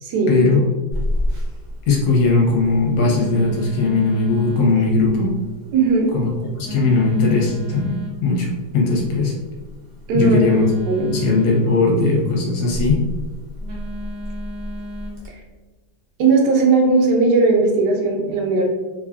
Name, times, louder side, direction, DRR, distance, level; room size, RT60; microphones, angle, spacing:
voice 1, 0.3-0.6 1.9-5.4 6.1-7.9 8.2-8.5 8.7-9.3 10.1-10.6 11.1-13.0, left 3 dB, 75° left, -1 dB, 1.2 m, -18 dB
Telephone, 0.9-15.3, left 1 dB, 65° right, 0.4 m, -32 dB
voice 2, 5.7-6.1 10.1-10.4 10.9-11.1 15.3-15.4 16.2-18.7, right 3 dB, 90° right, 1 dB, 1.2 m, -17 dB
3.1 x 2.3 x 2.3 m, 1.3 s
omnidirectional pair, 1.8 m